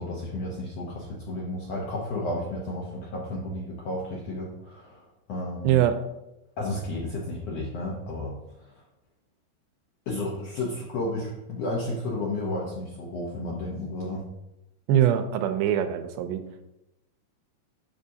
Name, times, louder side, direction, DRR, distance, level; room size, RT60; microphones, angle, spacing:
voice 1, 0.0-5.0 5.3-5.8 6.6-8.3 8.6-8.8 10.1-14.2, left 1 dB, 75° left, -4 dB, 1.5 m, -32 dB
voice 2, 5.6-6.0 14.9-16.4, right 11 dB, 85° right, 9 dB, 2.4 m, -23 dB
7.2 x 6.1 x 2.7 m, 0.91 s
omnidirectional pair, 4.1 m